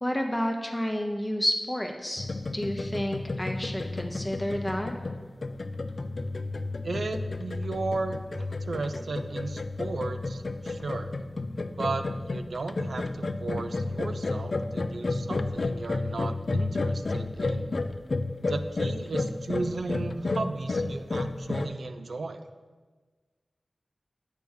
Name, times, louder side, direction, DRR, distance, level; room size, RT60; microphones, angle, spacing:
voice 1, 0.0-2.3 2.5-4.9, equal, 15° left, 3 dB, 0.6 m, -30 dB
sound 1, 2.2-21.7, left 3 dB, 55° left, 0.3 m, -32 dB
voice 2, 6.8-11.2 11.8-17.7 18.4-22.4, right 3 dB, 80° right, 9 dB, 0.4 m, -35 dB
8.2 x 3.4 x 6.4 m, 1.4 s
wide cardioid pair, 70°, 0 cm